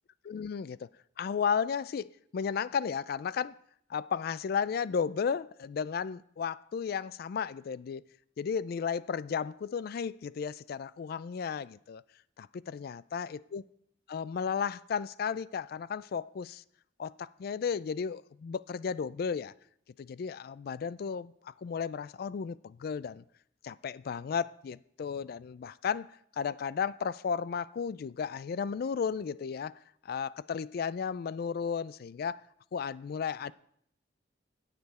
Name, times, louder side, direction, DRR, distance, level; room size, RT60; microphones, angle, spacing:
voice 1, 0.2-0.9 1.2-3.5 3.9-8.0 8.4-12.0 12.4-13.6 14.1-16.6 17.0-19.5 20.0-23.2 23.6-26.1 26.4-29.7 30.1-32.4 32.7-33.5, left 6 dB, 55° left, 0.3 m, -34 dB
17.5 x 6.8 x 4.2 m
head